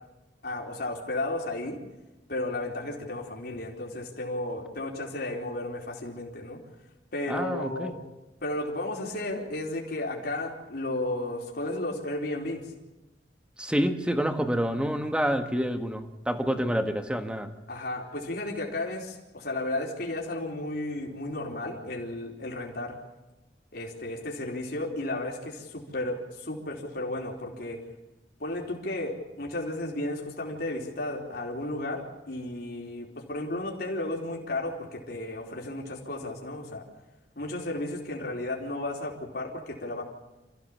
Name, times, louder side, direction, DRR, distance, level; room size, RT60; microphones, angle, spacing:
voice 1, 0.4-1.8 2.3-6.6 7.1-7.9 8.4-12.6 17.7-23.0 23.7-27.8 28.4-36.8 37.4-40.0, left 2 dB, 60° left, -1 dB, 4.4 m, -33 dB
voice 2, 7.3-8.0 13.6-17.5, equal, 5° right, 6 dB, 1.6 m, -28 dB
28.0 x 16.0 x 7.4 m, 1.1 s
head